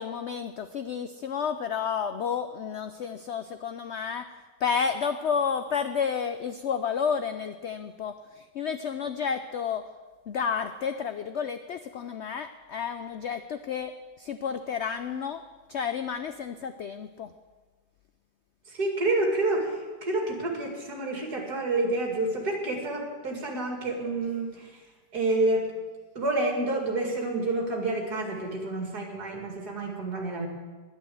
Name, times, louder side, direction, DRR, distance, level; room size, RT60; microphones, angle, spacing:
voice 1, 0.0-4.3 4.6-9.9 10.3-15.4 15.7-17.3, left 6 dB, 75° left, 9 dB, 0.6 m, -31 dB
voice 2, 18.7-24.8 25.1-25.7 26.1-30.5, right 2 dB, 65° right, 1 dB, 2.8 m, -28 dB
11.0 x 10.5 x 7.7 m, 1.4 s
omnidirectional pair, 1.8 m